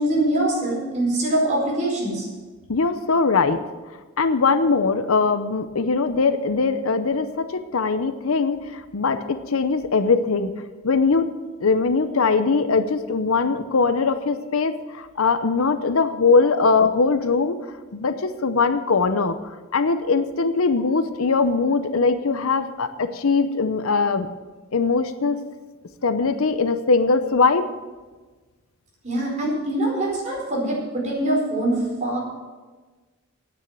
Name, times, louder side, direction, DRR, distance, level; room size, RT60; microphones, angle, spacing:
voice 1, 0.0-2.3 29.0-32.2, right 1 dB, 35° right, -3 dB, 4.7 m, -23 dB
voice 2, 2.7-3.6 4.2-10.5 10.8-11.3 11.6-17.6 17.9-24.3 24.7-25.4 26.0-27.6, left 4 dB, 70° left, 11 dB, 0.7 m, -21 dB
9.6 x 9.2 x 7.5 m, 1.3 s
head